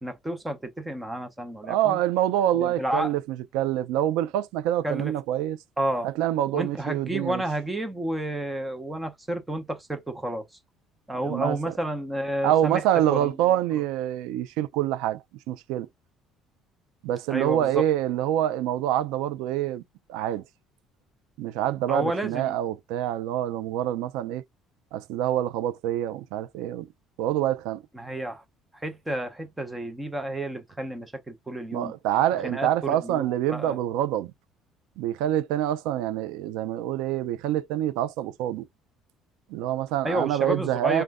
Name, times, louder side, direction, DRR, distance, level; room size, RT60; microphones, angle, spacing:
voice 1, 0.0-2.0 2.5-3.2 4.8-5.1 5.8-6.1 6.5-10.5 11.1-12.8 13.1-13.4 17.3-17.8 21.9-22.6 27.9-28.4 28.7-31.9 32.4-33.8 40.0-41.0, right 1 dB, 5° right, 0.6 m, -31 dB
voice 2, 1.6-5.6 6.0-7.4 11.2-11.7 12.4-15.2 15.5-15.9 17.0-19.8 20.1-20.4 21.4-24.4 24.9-26.9 27.2-27.8 31.7-34.3 35.0-38.6 39.5-41.0, right 12 dB, 85° right, 0.4 m, -26 dB
2.4 x 2.1 x 3.4 m
cardioid pair, 175°, 0 cm